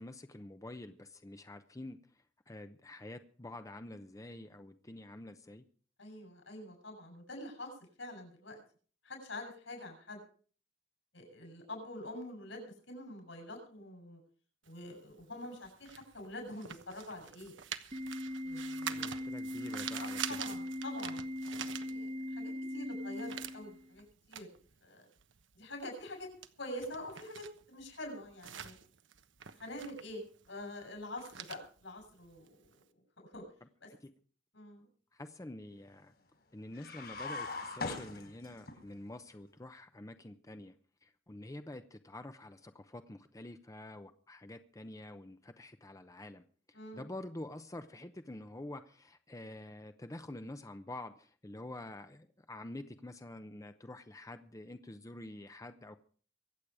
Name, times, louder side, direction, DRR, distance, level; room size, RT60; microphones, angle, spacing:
voice 1, 0.0-2.0 2.5-5.6 18.9-20.2 34.0-34.1 35.1-36.1 36.5-40.7 41.0-56.0, left 1 dB, 20° left, 9 dB, 0.7 m, -47 dB
voice 2, 6.0-7.7 8.0-8.6 9.0-10.2 11.1-14.2 14.6-17.5 18.4-19.2 20.0-21.2 21.5-24.5 24.8-25.0 25.5-26.3 26.6-28.7 29.6-33.0 33.3-33.4 33.8-33.9 34.5-34.9 46.7-47.1, left 1 dB, 75° left, 3 dB, 7.8 m, -46 dB
sound 1, 14.7-22.4 22.7-32.8, right 9 dB, 75° right, 1.1 m, -46 dB
Organ, 17.9-23.9, left 1 dB, 35° right, 1.2 m, -40 dB
sound 2, 36.7-38.8, left 3 dB, 60° left, 3.7 m, -40 dB
24.0 x 8.5 x 4.9 m, 0.43 s
head